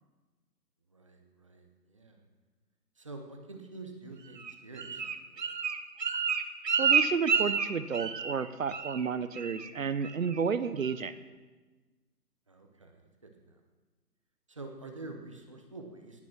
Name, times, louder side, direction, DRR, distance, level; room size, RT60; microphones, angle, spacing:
voice 1, 0.9-2.2 3.0-5.5 12.5-13.1 13.4-13.6 14.5-16.2, right 3 dB, 20° right, 3 dB, 0.8 m, -47 dB
Bird, 4.4-8.4 8.7-9.1 9.4-9.7 10.0-10.4 10.8-10.9, right 6 dB, 80° right, 1.1 m, -30 dB
voice 2, 6.8-11.1, right 6 dB, 55° right, 13 dB, 0.8 m, -31 dB
18.0 x 6.1 x 6.0 m, 1.3 s
figure-of-eight pair, 160°, 49 cm